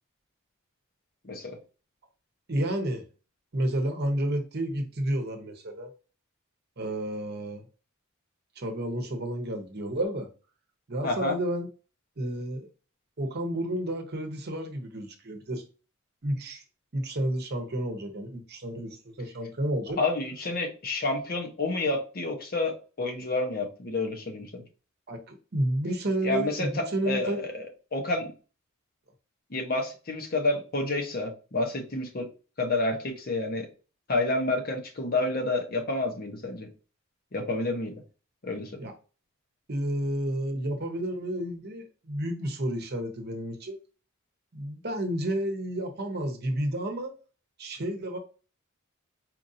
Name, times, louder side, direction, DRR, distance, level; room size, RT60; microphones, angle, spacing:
voice 1, 1.2-1.6 11.0-11.3 20.0-24.6 26.2-27.6 27.9-28.3 29.5-32.3 32.6-33.7 34.1-36.7 37.3-37.9 38.4-38.7, left 2 dB, 45° left, 0.9 m, -29 dB
voice 2, 2.5-3.0 3.5-5.9 6.8-7.6 8.6-10.3 10.9-11.7 12.2-12.7 13.2-15.7 16.2-16.6 16.9-20.0 25.1-27.4 38.8-38.9 39.7-43.8 44.5-47.2 47.6-48.2, right 1 dB, 50° right, 0.8 m, -31 dB
4.5 x 2.6 x 2.6 m
head